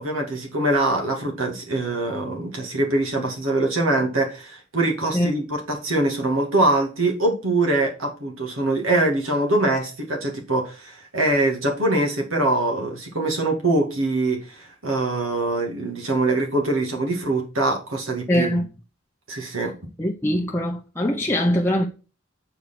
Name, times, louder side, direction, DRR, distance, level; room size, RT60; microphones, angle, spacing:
voice 1, 0.0-18.6 19.3-19.7, right 2 dB, 85° right, 2.3 m, -23 dB
voice 2, 18.3-18.6 20.0-21.9, equal, 10° left, 0.7 m, -22 dB
6.6 x 4.6 x 6.0 m
head